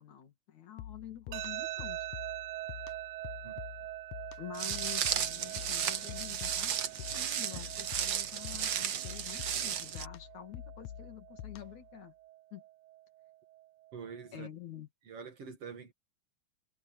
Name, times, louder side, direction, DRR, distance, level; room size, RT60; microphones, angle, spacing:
voice 1, 0.0-2.0 4.4-6.8 7.1-12.1 12.5-12.6 14.3-14.9, left 10 dB, 65° left, 3.5 m, -48 dB
sound 1, 0.8-11.9, left 11 dB, 85° left, 2.4 m, -47 dB
sound 2, 1.3-14.3, right 15 dB, 90° right, 1.5 m, -45 dB
Walk footsteps, 4.5-10.0, right 9 dB, 70° right, 1.0 m, -34 dB
voice 2, 13.9-14.5 15.0-15.9, right 6 dB, 50° right, 2.9 m, -45 dB
omnidirectional pair, 3.6 m